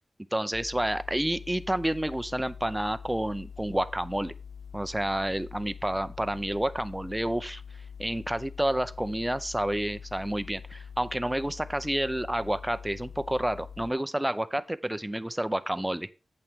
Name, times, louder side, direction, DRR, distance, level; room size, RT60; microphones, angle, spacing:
voice 1, 0.3-4.3 4.7-7.6 8.0-16.2, right 1 dB, 10° right, 14 dB, 0.6 m, -29 dB
sound 1, 0.5-13.9, left 6 dB, 55° left, 0.4 m, -44 dB
8.7 x 7.7 x 3.6 m, 0.32 s
wide cardioid pair, 75°, 0 cm